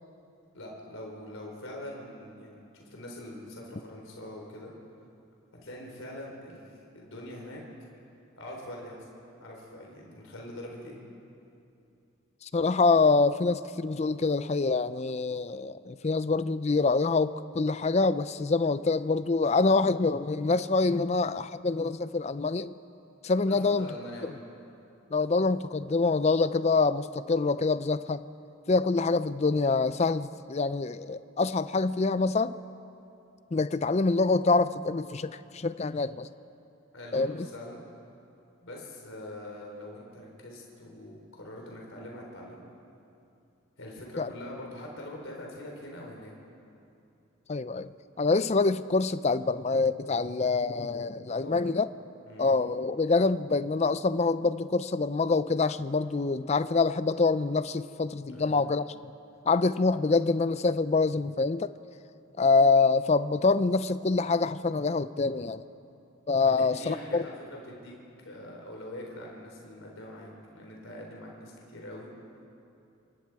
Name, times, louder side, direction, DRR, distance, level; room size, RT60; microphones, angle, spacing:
voice 1, 0.5-4.7 5.5-7.6 8.4-9.1 9.4-11.0 23.5-24.4 36.9-37.8 38.6-42.6 43.8-46.3 51.3-51.7 52.3-52.5 58.3-58.6 66.4-68.0 68.2-72.1, left 1 dB, 75° left, -1 dB, 3.8 m, -43 dB
voice 2, 12.4-22.7 23.2-23.9 25.1-28.2 28.7-32.5 33.5-36.3 37.1-37.3 44.2-44.3 47.5-47.9 48.2-51.9 52.4-58.9 59.5-61.7 62.4-65.6 66.3-67.2, left 3 dB, 30° left, 14 dB, 0.4 m, -25 dB
27.0 x 21.0 x 4.7 m, 2.7 s
head